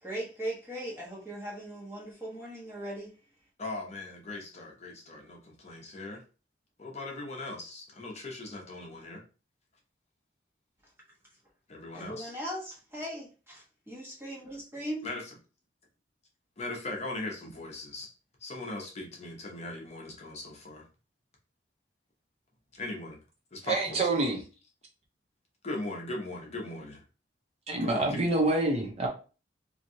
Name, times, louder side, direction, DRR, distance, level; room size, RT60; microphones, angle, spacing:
voice 1, 0.0-3.1 11.9-15.1, right 1 dB, 15° right, 1.1 m, -39 dB
voice 2, 3.6-6.2 6.8-9.2 11.7-12.3 15.0-15.3 16.6-18.1 18.4-20.9 22.7-23.2 23.5-24.2 25.6-27.0 27.8-28.3, left 2 dB, 40° left, 0.7 m, -39 dB
voice 3, 23.6-24.4 27.7-29.1, right 2 dB, 35° right, 0.6 m, -27 dB
3.0 x 2.6 x 2.6 m
head